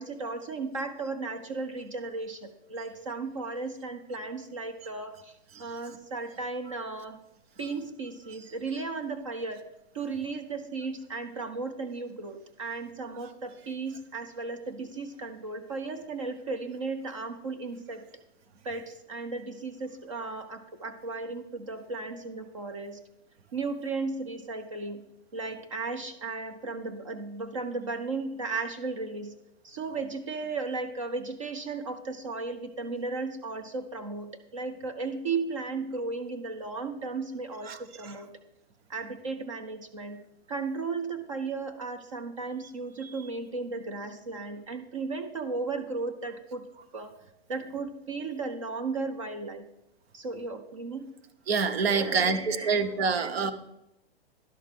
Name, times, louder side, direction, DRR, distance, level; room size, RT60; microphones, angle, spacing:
voice 1, 0.0-5.3 5.6-7.2 7.6-9.6 9.9-18.0 18.6-23.0 23.5-25.0 25.3-29.3 29.6-38.3 38.9-40.2 40.5-46.7 46.9-47.1 47.5-49.7 50.1-51.1 51.9-53.5, right 3 dB, 30° right, 8 dB, 0.5 m, -35 dB
voice 2, 51.5-53.5, right 5 dB, 65° right, 12 dB, 0.9 m, -26 dB
11.5 x 6.4 x 3.7 m, 0.86 s
hypercardioid pair, 175°, 33 cm